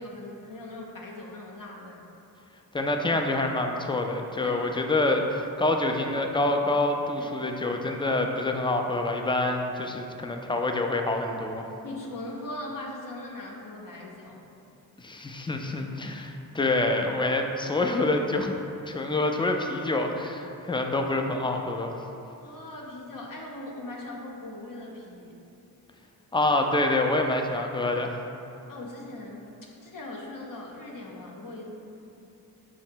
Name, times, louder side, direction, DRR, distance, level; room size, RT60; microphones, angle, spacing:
voice 1, 0.0-2.0 4.4-4.6 7.2-7.3 11.8-14.4 22.4-25.4 28.7-29.5 29.8-31.7, left 1 dB, 55° left, -2 dB, 0.7 m, -40 dB
voice 2, 2.7-11.6 15.0-18.6 18.9-21.9 26.3-28.2, left 2 dB, 15° left, 3 dB, 0.3 m, -26 dB
4.8 x 2.1 x 4.4 m, 2.9 s
cardioid pair, 50°, 39 cm